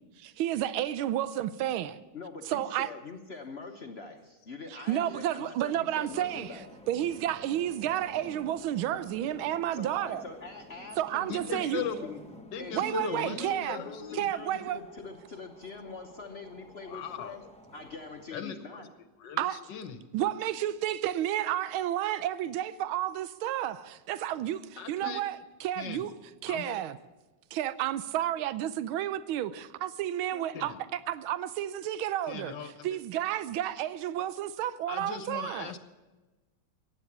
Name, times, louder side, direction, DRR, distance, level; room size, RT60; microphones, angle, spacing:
voice 1, 0.2-2.0 2.5-2.9 4.9-6.6 6.9-10.2 11.0-11.8 12.7-13.8 14.1-14.8 19.4-19.6 20.1-26.1 26.4-27.0 27.5-35.7, right 12 dB, 85° right, 1.5 m, -31 dB
voice 2, 2.1-6.7 9.7-12.2 12.6-17.4 17.7-18.9 30.3-30.7, left 4 dB, 45° left, 0.8 m, -43 dB
sound 1, 6.1-18.3, left 1 dB, 10° left, 0.4 m, -51 dB
voice 3, 11.3-12.1 12.5-14.2 16.9-17.4 18.3-18.8 19.2-20.0 24.8-25.2 25.8-26.1 26.5-26.8 30.5-30.8 32.3-33.0 34.9-35.8, left 7 dB, 65° left, 1.4 m, -38 dB
15.0 x 9.6 x 7.2 m
omnidirectional pair, 2.2 m